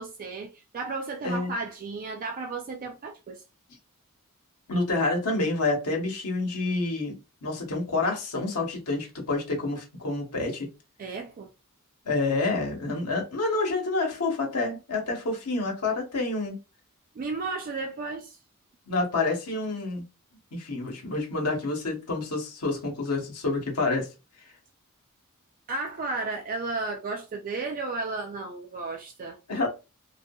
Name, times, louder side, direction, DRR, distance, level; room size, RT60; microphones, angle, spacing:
voice 1, 0.0-3.4 11.0-11.5 17.2-18.4 25.7-29.4, right 3 dB, 40° right, 0.3 m, -33 dB
voice 2, 4.7-10.7 12.0-16.6 18.9-20.0 20.5-24.1 29.5-29.7, left 3 dB, 90° left, 0.9 m, -28 dB
2.7 x 2.3 x 2.2 m
head